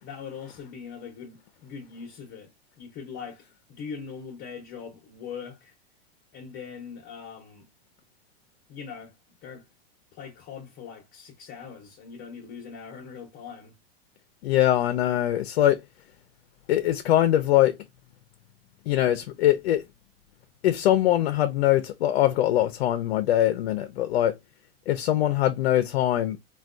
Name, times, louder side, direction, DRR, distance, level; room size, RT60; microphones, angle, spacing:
voice 1, 0.0-2.5 2.8-3.4 3.7-5.7 6.3-7.7 8.7-9.1 9.4-9.6 10.1-13.7, left 6 dB, 35° left, 0.8 m, -41 dB
voice 2, 14.4-15.8 16.7-17.8 18.9-19.8 20.6-24.4 24.9-26.4, left 13 dB, 80° left, 0.5 m, -22 dB
3.3 x 2.2 x 2.4 m
supercardioid pair, 130°, 31 cm